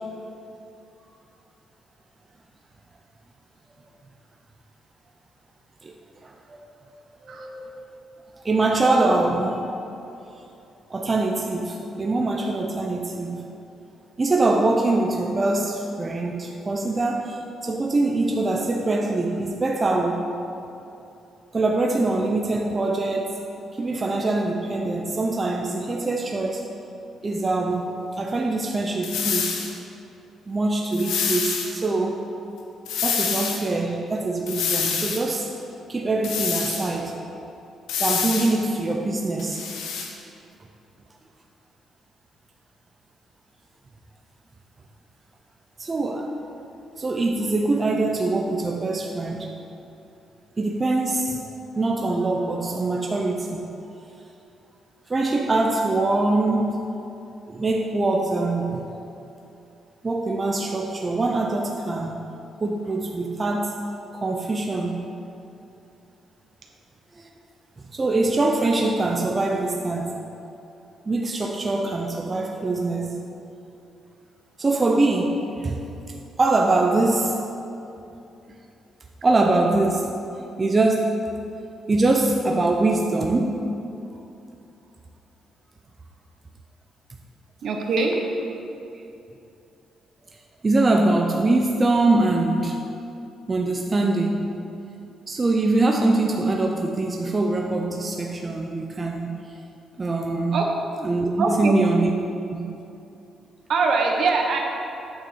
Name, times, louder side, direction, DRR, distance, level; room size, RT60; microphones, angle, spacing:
voice 1, 6.2-6.6 7.3-7.8 8.4-9.6 10.9-13.5 14.2-20.3 21.5-23.4 23.8-26.7 27.2-29.5 30.5-32.2 33.0-35.5 35.9-37.2 38.0-39.6 45.8-46.3 47.0-49.5 50.6-51.4 51.8-53.7 55.1-56.8 57.5-58.9 60.0-62.2 62.6-63.8 64.2-65.1 67.9-70.1 71.1-73.3 74.6-75.8 76.4-77.4 79.2-80.1 80.6-81.2 81.9-83.7 90.6-92.8 93.5-94.5 95.3-99.4 100.0-100.6 101.0-102.1 102.5-102.7, right 2 dB, 30° right, 2 dB, 0.6 m, -23 dB
sound 1, 29.0-29.7 30.9-31.7 32.9-33.6 34.5-35.2 36.2-36.9 37.9-38.6 39.4-40.1, left 6 dB, 90° left, 1.0 m, -26 dB
voice 2, 87.6-88.1 100.5-100.7 101.4-101.7 103.7-104.6, right 4 dB, 65° right, 1 dB, 1.2 m, -22 dB
8.8 x 4.4 x 6.8 m, 2.8 s
cardioid pair, 90°, 0 cm